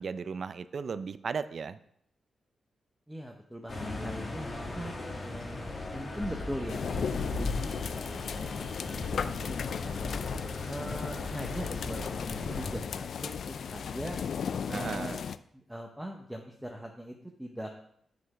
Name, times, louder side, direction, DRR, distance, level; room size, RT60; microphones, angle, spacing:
voice 1, 0.0-1.8 14.7-15.2, right 5 dB, 55° right, 14 dB, 0.4 m, -36 dB
voice 2, 3.1-9.9 10.7-14.2 14.6-15.2 15.5-17.8, equal, 5° right, 1 dB, 0.8 m, -41 dB
sound 1, 3.7-12.8, left 2 dB, 45° left, 1.8 m, -37 dB
sound 2, 6.7-15.4, left 7 dB, 70° left, 0.3 m, -36 dB
8.1 x 5.1 x 4.8 m, 0.71 s
cardioid pair, 100°, 0 cm